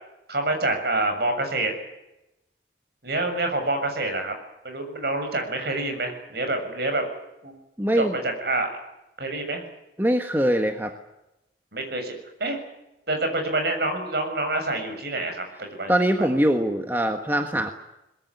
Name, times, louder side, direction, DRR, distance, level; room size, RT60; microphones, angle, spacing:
voice 1, 0.3-1.7 3.0-4.3 4.6-7.0 7.4-7.6 8.0-8.7 9.2-9.6 11.7-12.6 13.1-15.4 15.7-15.9, right 2 dB, 55° right, 5 dB, 7.2 m, -27 dB
voice 2, 7.8-8.2 10.0-10.9 15.9-17.7, right 1 dB, 10° right, 5 dB, 1.5 m, -22 dB
23.0 x 21.5 x 9.8 m, 0.91 s
head